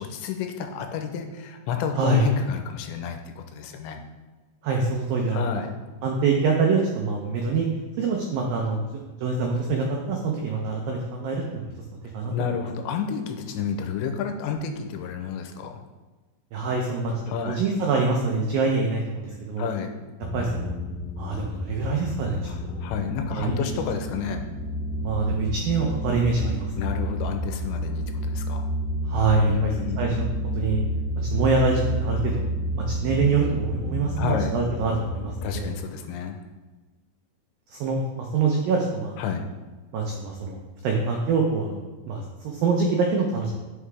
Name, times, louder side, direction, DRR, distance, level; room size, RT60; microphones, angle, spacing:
voice 1, 0.0-4.0 5.3-5.7 12.3-15.8 17.3-17.6 19.6-19.9 22.5-24.4 26.8-28.7 29.5-30.2 34.2-34.5 35.4-36.4 39.2-39.5, left 7 dB, 85° left, 5 dB, 2.9 m, -30 dB
voice 2, 4.6-5.6 6.0-7.7 8.0-11.7 12.1-12.3 16.5-17.1 17.5-19.7 20.3-20.7 21.2-22.8 23.4-23.6 25.0-26.7 29.1-30.3 30.6-30.8 31.3-35.7 37.7-39.2 39.9-41.8 42.1-43.5, right 4 dB, 85° right, 0 dB, 2.0 m, -25 dB
sound 1, 20.2-35.8, equal, 65° left, 2.6 m, -30 dB
9.7 x 5.8 x 3.4 m, 1.3 s
omnidirectional pair, 5.2 m